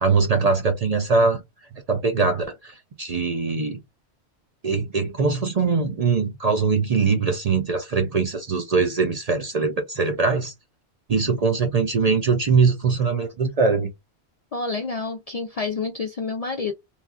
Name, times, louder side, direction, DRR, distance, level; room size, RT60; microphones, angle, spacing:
voice 1, 0.0-1.4 1.9-3.8 4.6-10.5 11.1-13.9, right 4 dB, 50° right, 0.5 m, -22 dB
voice 2, 14.5-16.7, left 4 dB, 55° left, 0.4 m, -28 dB
3.1 x 2.3 x 2.3 m
omnidirectional pair, 1.1 m